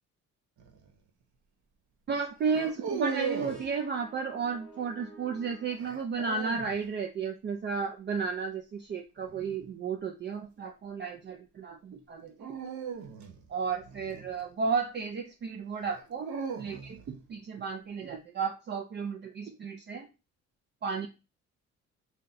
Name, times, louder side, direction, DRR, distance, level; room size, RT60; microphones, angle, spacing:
sound 1, 0.6-0.9 2.4-3.7 5.8-6.8 9.2-9.6 12.4-14.8 15.8-17.1, right 5 dB, 70° right, 0.7 m, -38 dB
voice 1, 2.1-12.5 13.5-20.1 20.8-21.1, right 5 dB, 35° right, 4 dB, 0.4 m, -33 dB
sound 2, 3.1-6.6, right 2 dB, 5° left, 0.9 m, -52 dB
2.7 x 2.2 x 3.8 m, 0.29 s
cardioid pair, 90°, 30 cm